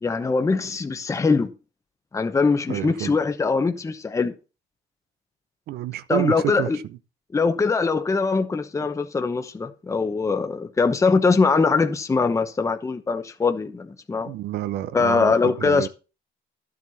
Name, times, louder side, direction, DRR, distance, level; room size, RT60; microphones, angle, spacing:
voice 1, 0.0-1.5 2.1-4.3 6.1-6.8 7.3-14.3 14.9-15.9, left 4 dB, 20° left, 0.9 m, -22 dB
voice 2, 2.7-3.1 5.7-7.0 14.2-15.9, right 13 dB, 70° right, 0.7 m, -29 dB
11.5 x 7.6 x 4.1 m
cardioid pair, 110°, 17 cm